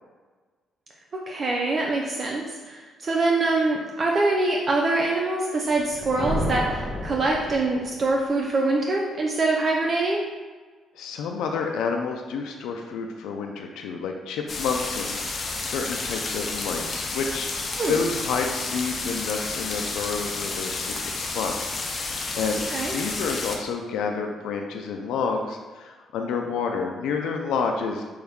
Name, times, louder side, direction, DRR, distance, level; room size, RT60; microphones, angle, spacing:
voice 1, 1.1-10.2 17.8-18.0 22.7-22.9, right 2 dB, 40° right, -1 dB, 0.5 m, -24 dB
Thunder, 5.7-8.1, equal, 20° right, 0.8 m, -31 dB
voice 2, 11.0-17.5 17.9-28.0, left 5 dB, 90° left, 3 dB, 0.3 m, -29 dB
sound 1, 14.5-23.6, left 3 dB, 45° left, 0.6 m, -31 dB
5.2 x 2.3 x 3.5 m, 1.4 s
cardioid pair, 90°, 0 cm